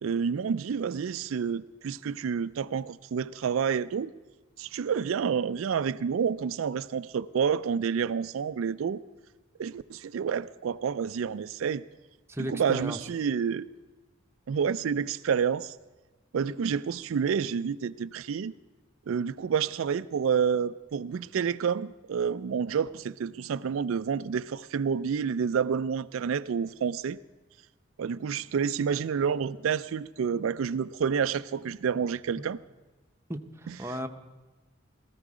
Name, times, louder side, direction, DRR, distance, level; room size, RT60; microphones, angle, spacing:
voice 1, 0.0-4.1 4.6-9.0 9.6-11.8 12.4-13.7 14.5-15.8 16.3-18.5 19.1-27.2 28.0-32.6 33.7-34.0, right 7 dB, 85° right, 13 dB, 0.4 m, -29 dB
voice 2, 12.3-13.0 33.3-34.1, equal, 15° right, 5 dB, 0.8 m, -35 dB
17.0 x 14.5 x 4.9 m, 1.2 s
head